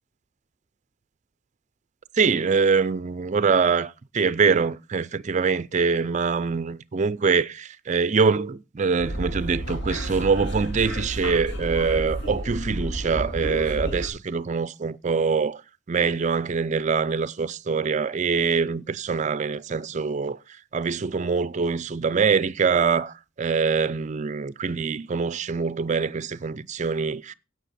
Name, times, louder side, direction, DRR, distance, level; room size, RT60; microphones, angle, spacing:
voice 1, 2.1-15.6 15.9-20.4 20.7-27.3, right 5 dB, 35° right, 0.4 m, -24 dB
sound 1, 9.0-14.1, right 1 dB, 60° left, 2.7 m, -31 dB
16.5 x 5.9 x 4.2 m
head